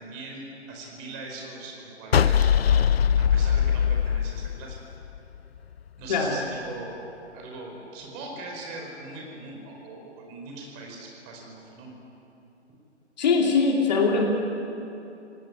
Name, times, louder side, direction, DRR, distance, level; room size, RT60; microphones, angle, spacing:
voice 1, 0.0-2.5 3.2-4.8 6.0-7.0 7.3-11.9, right 2 dB, 20° right, 0 dB, 4.8 m, -41 dB
sound 1, 2.1-5.4, left 8 dB, 60° left, 0.5 m, -21 dB
voice 2, 13.2-14.2, left 4 dB, 35° left, 0 dB, 2.8 m, -21 dB
28.0 x 18.0 x 9.8 m, 2.9 s
figure-of-eight pair, 145°, 35 cm